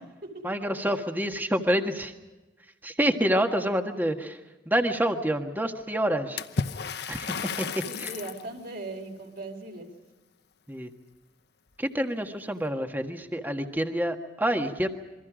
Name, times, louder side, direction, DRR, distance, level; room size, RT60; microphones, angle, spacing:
voice 1, 0.4-2.1 2.8-4.4 4.6-6.4 7.1-7.7 8.0-8.1 10.7-10.9 11.8-14.9, equal, 10° right, 5 dB, 1.5 m, -27 dB
Water / Splash splatter, 6.4-8.5, left 5 dB, 60° left, 0.9 m, -33 dB
voice 2, 7.9-9.9, right 2 dB, 55° right, 2 dB, 4.8 m, -39 dB
27.5 x 23.5 x 5.1 m, 1.1 s
head